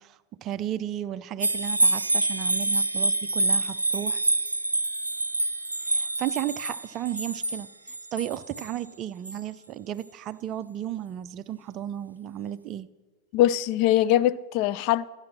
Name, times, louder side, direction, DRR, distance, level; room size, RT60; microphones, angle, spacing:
voice 1, 0.0-4.2 5.9-12.9, right 11 dB, 35° right, 0.5 m, -34 dB
sound 1, 1.4-8.7 9.3-9.4, right 2 dB, 80° right, 0.5 m, -26 dB
voice 2, 13.3-15.1, left 13 dB, 45° left, 0.4 m, -22 dB
12.5 x 9.6 x 5.8 m
figure-of-eight pair, 90°, 0 cm